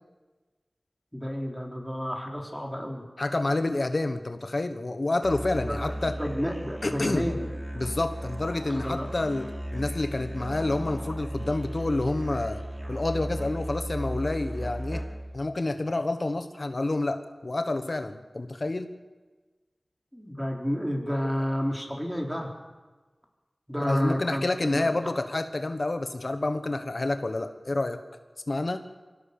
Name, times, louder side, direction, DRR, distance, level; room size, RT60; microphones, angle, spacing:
voice 1, 1.1-3.0 5.7-7.5 8.7-9.1 20.1-22.5 23.7-24.9, equal, ahead, 0 dB, 4.2 m, -31 dB
voice 2, 3.2-6.2 6.8-7.3 7.7-12.6 12.9-15.0 15.3-18.9 23.8-28.0 28.5-28.8, left 2 dB, 55° left, 8 dB, 1.3 m, -28 dB
Musical instrument, 5.2-15.4, equal, 25° right, 5.8 m, -35 dB
23.5 x 17.0 x 7.0 m, 1.3 s
wide cardioid pair, 55°, 0 cm